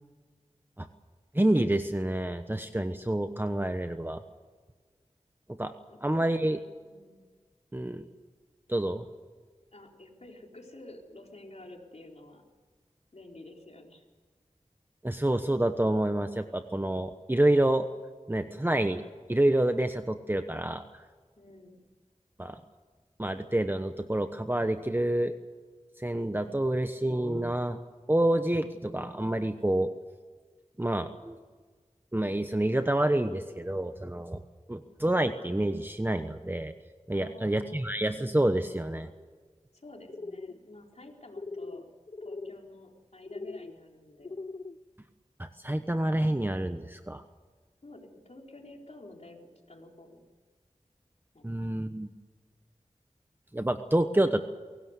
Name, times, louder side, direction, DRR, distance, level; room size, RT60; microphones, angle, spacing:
voice 1, 1.3-4.2 5.6-5.7 6.0-6.6 7.7-8.1 8.7-9.0 15.0-17.9 18.3-19.0 19.3-21.0 22.4-22.6 23.2-25.3 26.0-27.8 28.1-29.9 30.8-31.4 32.1-34.4 34.7-36.7 37.1-39.1 45.4-47.2 51.4-52.1 53.5-54.4, right 1 dB, 15° right, 8 dB, 1.0 m, -28 dB
voice 2, 5.9-6.3 6.8-7.2 9.7-12.5 13.1-14.0 21.4-21.8 37.1-37.9 39.7-41.9 42.2-44.4 47.8-50.2 51.3-51.7, left 2 dB, 60° left, 1 dB, 4.3 m, -50 dB
sound 1, 40.1-40.6 41.3-41.8 42.1-42.6 43.3-43.7 44.2-44.8, left 3 dB, 40° left, 0.6 m, -40 dB
24.0 x 17.5 x 8.2 m, 1.5 s
wide cardioid pair, 60°, 12 cm